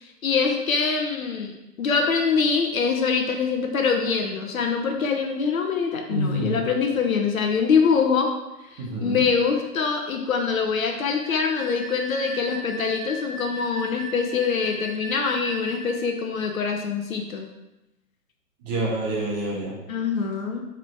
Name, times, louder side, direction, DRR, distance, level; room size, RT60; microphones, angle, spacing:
voice 1, 0.2-1.5 1.8-8.3 8.7-17.4 19.9-20.6, left 5 dB, 55° left, 3 dB, 1.1 m, -24 dB
voice 2, 6.1-6.6 8.8-9.2 18.6-19.8, right 1 dB, 25° right, -5 dB, 2.0 m, -27 dB
Wind instrument woodwind instrument, 11.2-16.0, right 1 dB, 65° right, 1.2 m, -37 dB
6.5 x 4.7 x 4.7 m, 0.97 s
hypercardioid pair, 145°, 48 cm